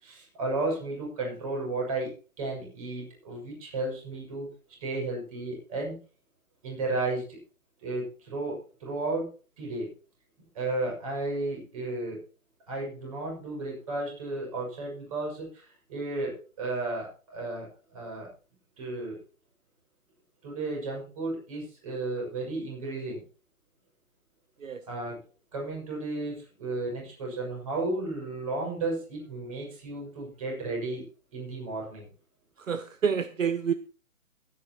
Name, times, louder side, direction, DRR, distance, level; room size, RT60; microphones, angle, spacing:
voice 1, 0.0-4.5 4.8-6.0 6.6-7.3 7.8-9.3 9.6-9.9 10.5-12.2 12.7-17.7 17.9-18.3 18.8-19.2 20.4-23.2 24.9-25.2 25.5-31.0 31.3-32.1, right 2 dB, 25° right, -1 dB, 6.3 m, -33 dB
voice 2, 32.6-33.7, right 7 dB, 65° right, 11 dB, 1.0 m, -28 dB
22.0 x 9.5 x 3.0 m, 0.37 s
hypercardioid pair, 170°, 43 cm